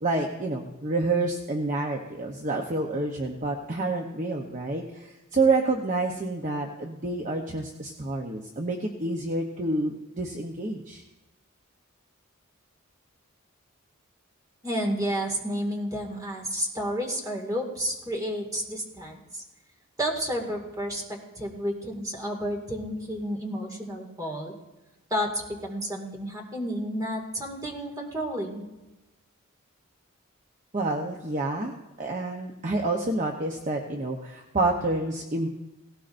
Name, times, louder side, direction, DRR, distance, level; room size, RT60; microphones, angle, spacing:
voice 1, 0.0-11.0 30.7-31.7 32.0-35.5, right 2 dB, 35° right, 1 dB, 0.8 m, -28 dB
voice 2, 14.6-19.4 20.0-24.6 25.1-28.7, equal, 15° right, 1 dB, 2.1 m, -31 dB
17.5 x 17.0 x 2.6 m, 1.0 s
head